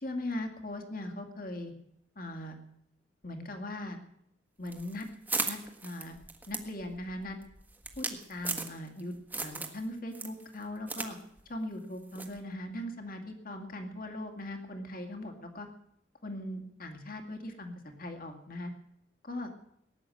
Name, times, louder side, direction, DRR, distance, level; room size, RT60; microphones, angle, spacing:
voice 1, 0.0-1.7 2.2-2.6 3.2-4.0 4.6-5.1 5.5-6.2 6.5-7.4 8.0-11.2 11.5-15.7 16.2-17.7 18.0-18.7 19.2-19.5, left 1 dB, 50° left, 4 dB, 2.3 m, -39 dB
sound 1, 4.7-9.0 9.3-9.8 10.1-11.1 11.4-11.5 12.2-12.4, right 3 dB, 10° right, 1.4 m, -36 dB
18.5 x 10.0 x 7.8 m, 0.75 s
head